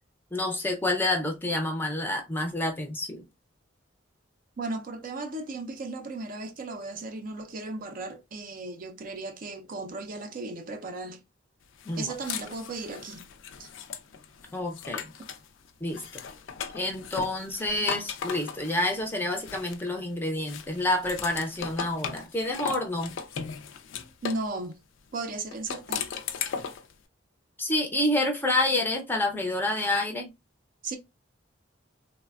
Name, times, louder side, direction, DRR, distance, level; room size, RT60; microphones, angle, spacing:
voice 1, 0.3-3.2 11.9-12.1 14.5-15.1 15.8-16.0 16.7-23.1 27.6-30.3, left 1 dB, 10° left, 0.5 m, -28 dB
voice 2, 4.6-11.2 12.0-13.2 13.6-13.7 24.2-24.8 25.1-26.1 30.8-31.0, right 3 dB, 45° right, 0.4 m, -36 dB
sound 1, 11.8-15.5 15.9-20.1 20.5-24.5 25.5-26.9, left 7 dB, 75° left, 0.4 m, -37 dB
3.2 x 2.1 x 2.2 m
head